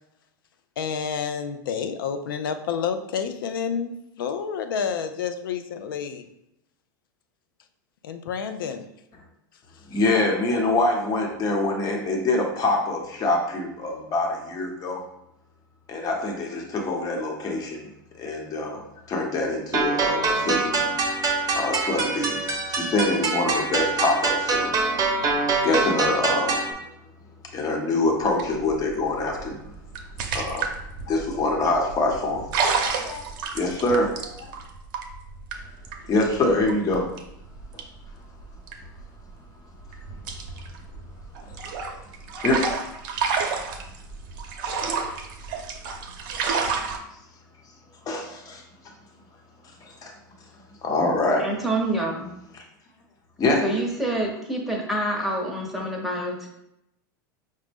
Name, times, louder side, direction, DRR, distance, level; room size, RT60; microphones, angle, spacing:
voice 1, 0.8-6.3 8.0-8.9, left 7 dB, 85° left, 8 dB, 0.4 m, -29 dB
voice 2, 9.9-15.0 15.9-17.9 18.2-18.8 19.1-20.8 21.6-24.7 25.6-26.6 27.5-29.6 30.3-30.7 31.0-32.4 32.8-33.3 33.5-34.5 36.1-37.1 37.7-37.8 41.4-41.5 42.4-42.6 48.1-48.6 49.8-50.1 50.8-51.5 53.4-53.6, left 2 dB, 35° left, 1 dB, 1.0 m, -25 dB
sound 1, 19.7-26.7, right 3 dB, 35° right, 0.8 m, -24 dB
sound 2, 28.2-39.4 39.8-47.0, right 5 dB, 65° right, 0.6 m, -30 dB
voice 3, 51.4-52.3 53.6-56.5, right 1 dB, ahead, -1 dB, 0.9 m, -27 dB
5.0 x 2.1 x 3.4 m, 0.81 s
hypercardioid pair, 105°, 11 cm